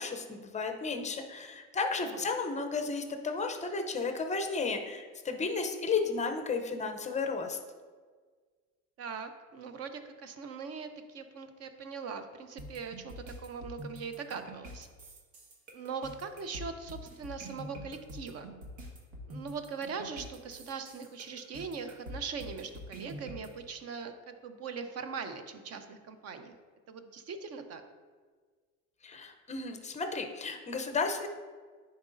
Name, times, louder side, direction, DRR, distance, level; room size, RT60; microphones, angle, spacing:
voice 1, 0.0-7.6 29.0-31.3, left 4 dB, 15° left, 5 dB, 0.6 m, -33 dB
voice 2, 9.0-14.9 15.7-18.5 19.3-26.5 26.9-27.8, right 5 dB, 35° right, 8 dB, 0.7 m, -41 dB
sound 1, 12.6-23.5, equal, 70° right, 1.7 m, -45 dB
10.0 x 4.2 x 2.6 m, 1.5 s
supercardioid pair, 105°, 43 cm